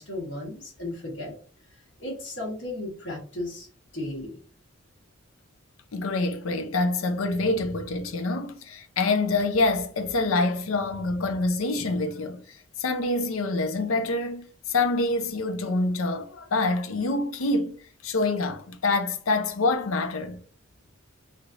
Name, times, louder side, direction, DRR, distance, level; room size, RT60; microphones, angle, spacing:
voice 1, 0.0-1.4 1.7-3.7 3.9-4.4, left 1 dB, 60° left, 1.1 m, -35 dB
voice 2, 5.9-17.7 18.0-20.4, left 2 dB, 80° left, 0.5 m, -26 dB
3.2 x 2.8 x 2.4 m
head